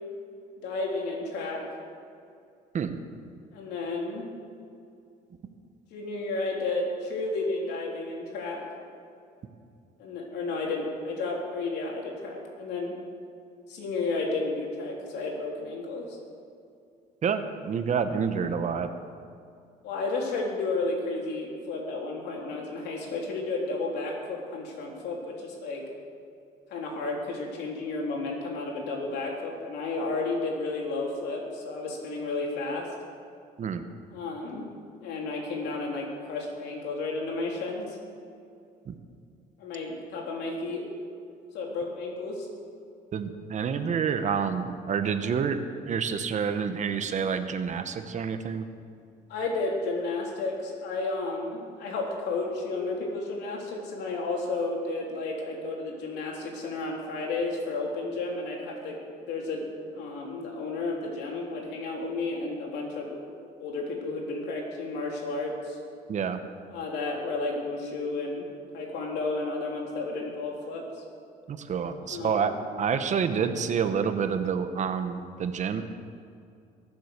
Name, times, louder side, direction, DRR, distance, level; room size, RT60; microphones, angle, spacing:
voice 1, 0.6-1.7 3.5-4.2 5.9-8.6 10.0-12.9 13.7-16.2 19.8-25.8 26.7-32.9 34.1-34.6 35.0-38.0 39.6-40.8 41.5-42.5 49.3-59.7 59.9-63.2 63.6-65.8 66.7-68.4 68.7-70.8 72.1-72.5, left 3 dB, 80° left, -1 dB, 3.8 m, -32 dB
voice 2, 17.2-18.9 33.6-33.8 38.9-39.0 43.1-45.6 45.9-48.7 66.1-66.4 71.5-72.5 72.8-75.8, right 6 dB, 45° right, 9 dB, 1.2 m, -28 dB
22.5 x 7.7 x 6.7 m, 2.5 s
cardioid pair, 110°, 17 cm